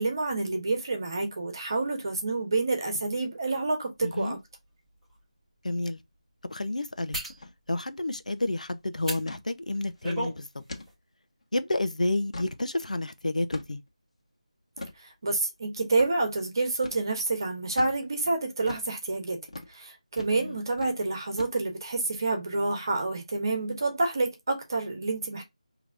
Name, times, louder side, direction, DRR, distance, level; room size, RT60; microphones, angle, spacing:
voice 1, 0.0-4.4 15.0-19.4 19.7-25.4, right 3 dB, 35° right, 1.2 m, -28 dB
voice 2, 4.0-4.4 5.6-6.0 6.5-7.2 7.7-10.6 11.5-13.8 20.3-20.6, left 2 dB, 85° left, 0.8 m, -30 dB
sound 1, 5.0-5.2 7.1-7.4 9.0-9.2 9.7-10.4 10.7-10.9, right 1 dB, ahead, 1.1 m, -34 dB
sound 2, 7.3-7.5 7.8-7.9 8.3-8.6 9.3-9.5 9.9-10.1 10.7-10.9 11.4-11.5 12.0-12.6 13.5-13.9 14.8-15.0 16.0-16.1 16.8-17.0 17.8-18.0 18.7-18.9 19.5-19.7 20.2-20.4 20.7-21.0 21.4-21.8, left 2 dB, 60° left, 1.4 m, -41 dB
4.9 x 3.0 x 2.5 m
figure-of-eight pair, 175°, 4 cm